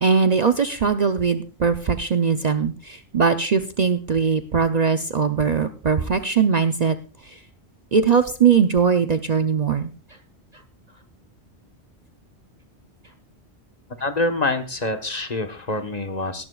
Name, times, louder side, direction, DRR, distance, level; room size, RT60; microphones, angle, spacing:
voice 1, 0.0-7.0 7.9-9.9, right 6 dB, 45° right, 9 dB, 0.7 m, -20 dB
voice 2, 14.0-16.5, left 2 dB, 40° left, 6 dB, 1.3 m, -26 dB
19.0 x 12.0 x 2.3 m, 0.35 s
omnidirectional pair, 1.1 m